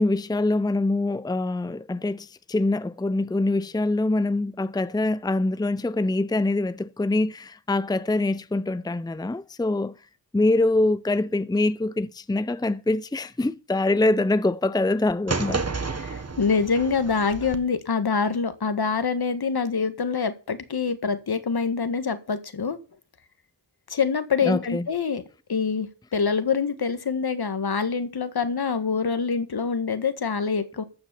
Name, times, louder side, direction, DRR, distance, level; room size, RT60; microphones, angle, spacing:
voice 1, 0.0-9.9 10.3-15.6 24.4-24.9, left 2 dB, 10° left, 0.6 m, -24 dB
sound 1, 15.3-17.6, right 4 dB, 35° right, 1.8 m, -30 dB
voice 2, 16.0-22.8 23.9-25.2 25.5-30.8, left 5 dB, 65° left, 1.8 m, -25 dB
14.5 x 6.0 x 7.0 m
cardioid pair, 45°, 41 cm